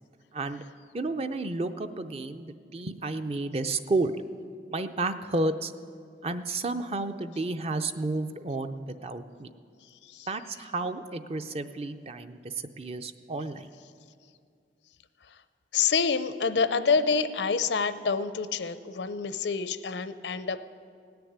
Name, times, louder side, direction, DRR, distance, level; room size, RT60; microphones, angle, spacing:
voice 1, 0.3-0.6 0.9-4.1 4.7-5.7 6.2-9.5 10.3-13.7, right 2 dB, 35° right, 9 dB, 0.5 m, -31 dB
voice 2, 15.7-20.6, left 5 dB, 85° left, 12 dB, 0.6 m, -27 dB
17.5 x 6.9 x 9.4 m, 2.3 s
head